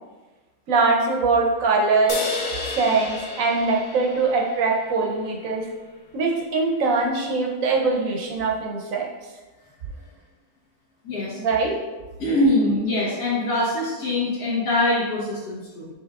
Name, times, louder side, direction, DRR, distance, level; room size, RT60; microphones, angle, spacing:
voice 1, 0.7-2.2 2.6-5.7 6.1-9.1 11.4-11.8, right 3 dB, 70° right, 1 dB, 1.0 m, -22 dB
sound 1, 2.1-5.6, left 3 dB, 60° left, 0.5 m, -32 dB
voice 2, 11.0-11.4 12.2-15.9, left 1 dB, 85° left, -9 dB, 1.6 m, -23 dB
6.3 x 3.4 x 2.3 m, 1.2 s
omnidirectional pair, 1.6 m